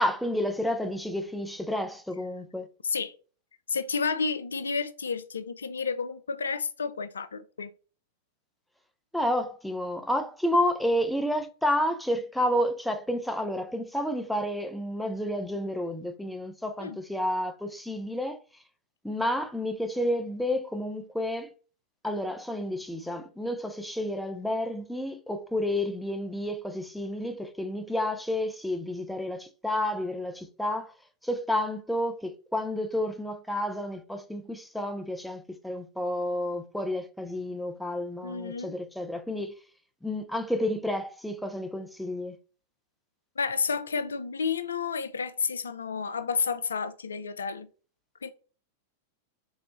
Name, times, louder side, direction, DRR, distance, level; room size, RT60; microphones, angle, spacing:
voice 1, 0.0-2.7 9.1-18.4 19.0-21.5 22.0-30.9 31.2-39.5 40.0-42.4, left 1 dB, ahead, 0.6 m, -30 dB
voice 2, 3.7-7.7 16.8-17.0 38.2-38.7 43.4-47.7 48.2-48.3, left 5 dB, 85° left, 0.4 m, -31 dB
3.3 x 2.9 x 3.8 m
hypercardioid pair, 100°, 0 cm